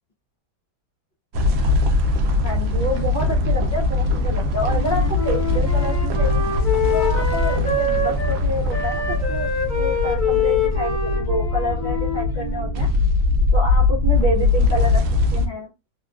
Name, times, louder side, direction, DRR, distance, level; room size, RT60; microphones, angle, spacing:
sound 1, 1.3-15.5, left 3 dB, 70° right, 0.8 m, -21 dB
voice 1, 2.4-6.4 6.9-12.9 13.5-15.0 15.3-15.7, equal, 60° left, -6 dB, 0.4 m, -28 dB
Wind instrument woodwind instrument, 4.6-8.4 8.7-12.8, left 4 dB, 15° left, 0.7 m, -26 dB
3.0 x 2.3 x 2.3 m, 0.27 s
omnidirectional pair, 1.9 m